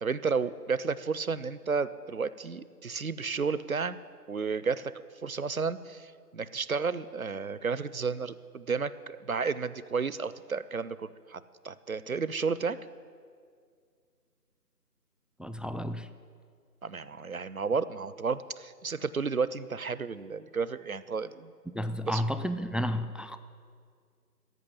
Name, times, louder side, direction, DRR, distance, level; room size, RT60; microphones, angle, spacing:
voice 1, 0.0-4.0 4.3-4.9 5.2-12.8 16.8-21.5 22.1-22.2, right 5 dB, 60° right, 16 dB, 0.5 m, -32 dB
voice 2, 15.4-16.1 21.7-23.4, equal, ahead, 10 dB, 0.3 m, -32 dB
14.5 x 6.1 x 10.0 m, 2.1 s
figure-of-eight pair, 175°, 49 cm